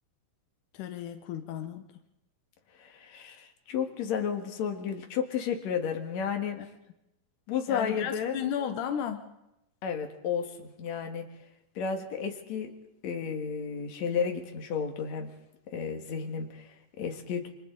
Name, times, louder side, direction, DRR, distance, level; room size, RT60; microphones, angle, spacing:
voice 1, 0.7-1.9 6.6-6.7 7.7-9.3, left 9 dB, 90° left, 7 dB, 2.5 m, -34 dB
voice 2, 2.8-6.6 7.5-8.4 9.8-11.3 11.8-12.7 13.0-15.3 15.7-17.5, left 7 dB, 65° left, 4 dB, 2.9 m, -32 dB
28.5 x 25.0 x 3.9 m, 0.89 s
omnidirectional pair, 3.5 m